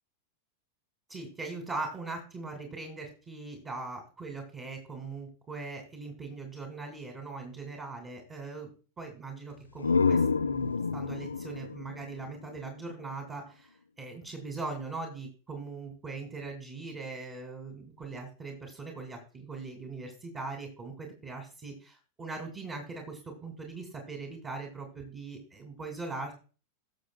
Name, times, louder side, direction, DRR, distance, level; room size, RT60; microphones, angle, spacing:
voice 1, 1.1-8.7 9.0-26.3, right 3 dB, 25° right, 2 dB, 2.8 m, -40 dB
sound 1, 9.5-13.2, left 5 dB, 75° left, 0.6 m, -29 dB
19.5 x 7.0 x 2.3 m, 0.36 s
figure-of-eight pair, 90°, 0 cm